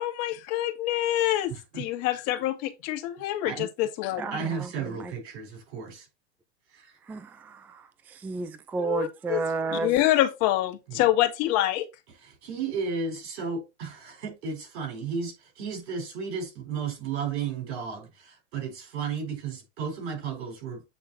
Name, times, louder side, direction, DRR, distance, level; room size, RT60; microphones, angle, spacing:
voice 1, 0.0-4.3 8.8-9.4 9.7-11.9, left 14 dB, 45° left, 1.7 m, -26 dB
voice 2, 1.5-1.9 3.4-3.7 4.3-6.1 6.7-6.9 10.9-11.0 12.2-20.8, right 5 dB, 65° right, 4.4 m, -34 dB
voice 3, 4.2-5.1 7.1-9.9, right 4 dB, 5° right, 0.3 m, -32 dB
8.3 x 3.6 x 4.1 m
hypercardioid pair, 120°, 34 cm